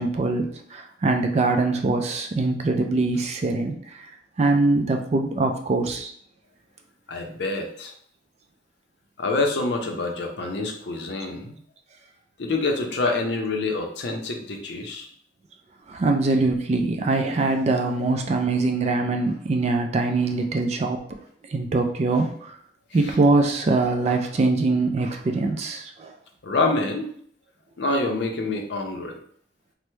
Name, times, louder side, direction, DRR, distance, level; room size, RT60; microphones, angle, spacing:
voice 1, 0.0-3.8 4.4-6.1 15.9-21.0 21.5-22.3 22.9-26.1, right 3 dB, 35° right, 4 dB, 0.3 m, -23 dB
voice 2, 7.1-7.9 9.2-11.6 12.4-15.1 23.0-23.2 26.4-27.1 27.8-29.2, left 3 dB, 65° left, 2 dB, 0.5 m, -26 dB
3.2 x 2.0 x 3.0 m, 0.63 s
head